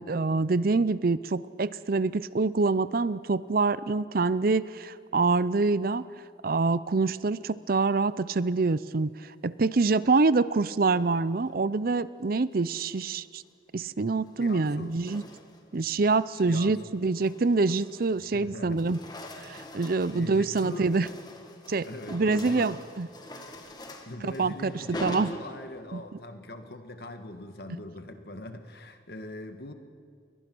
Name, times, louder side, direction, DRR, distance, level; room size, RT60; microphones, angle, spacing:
voice 1, 0.0-6.0 6.4-9.1 9.4-13.4 13.7-15.2 15.7-19.0 19.4-21.1 21.7-23.1 24.2-24.7 25.0-25.3 25.9-26.0, right 3 dB, 55° right, 17 dB, 0.6 m, -26 dB
sound 1, 12.6-13.1 14.2-15.8 16.2-16.5 16.9-18.4 18.6-26.0, left 1 dB, 25° left, 1.8 m, -44 dB
voice 2, 14.4-15.0 16.3-16.8 18.3-19.0 19.6-21.3 21.8-22.7 24.0-29.7, left 1 dB, 60° left, 7 dB, 1.7 m, -41 dB
29.0 x 22.0 x 6.2 m, 2.2 s
head